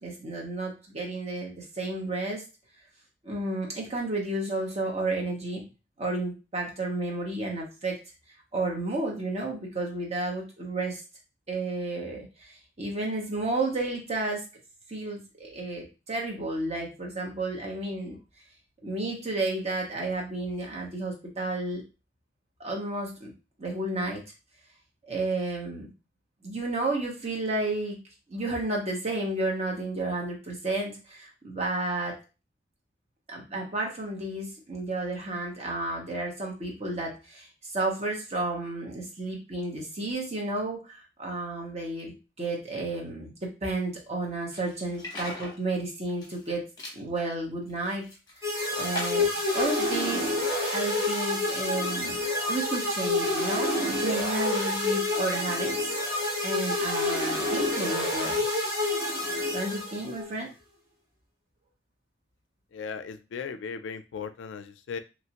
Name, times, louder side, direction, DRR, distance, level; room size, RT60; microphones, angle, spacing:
voice 1, 0.0-2.5 3.2-5.6 6.0-8.0 8.5-11.0 11.5-14.5 14.9-18.2 18.8-21.8 22.6-23.3 23.6-24.2 25.1-25.9 26.4-28.0 28.3-32.2 33.3-46.7 47.0-48.1 48.4-48.5 48.8-50.3 50.7-52.2 52.5-55.9 56.4-58.4 59.5-60.5, right 2 dB, 35° right, -1 dB, 0.9 m, -32 dB
sound 1, 44.5-45.6 46.1-46.5 46.8-47.0 47.6-48.4 48.9-49.4, left 2 dB, 20° left, 0.9 m, -40 dB
sound 2, 48.4-60.3, left 2 dB, 15° right, 1.1 m, -28 dB
voice 2, 62.7-65.0, left 6 dB, 85° left, 11 dB, 0.3 m, -37 dB
3.0 x 2.4 x 2.9 m, 0.29 s
head